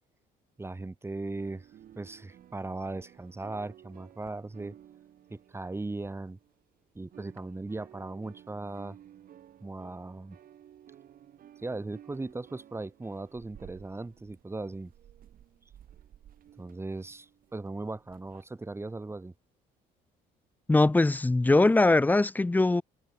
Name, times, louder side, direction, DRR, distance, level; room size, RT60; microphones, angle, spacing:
voice 1, 0.6-1.7 2.0-4.8 5.3-6.4 6.9-9.0 9.6-10.4 11.6-14.9 16.6-19.3, right 2 dB, 15° right, 4.1 m, -38 dB
sound 1, 1.4-6.7 7.0-18.4, right 10 dB, 55° right, 5.6 m, -55 dB
voice 2, 20.7-22.8, left 2 dB, 10° left, 0.7 m, -21 dB
cardioid pair, 110°, 17 cm